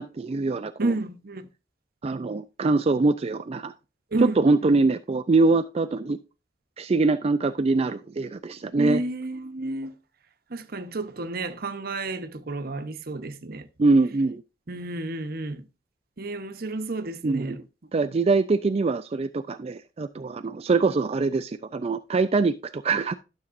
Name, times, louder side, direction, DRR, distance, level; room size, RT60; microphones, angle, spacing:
voice 1, 0.0-0.9 2.0-3.7 4.2-6.2 6.8-9.0 13.8-14.4 17.2-17.6 17.9-23.1, right 3 dB, 35° right, 0.4 m, -23 dB
voice 2, 0.8-1.5 4.1-4.8 8.8-9.9 10.5-13.7 14.7-15.7 16.2-17.6, right 2 dB, 55° right, 0.9 m, -31 dB
12.5 x 7.2 x 2.5 m
head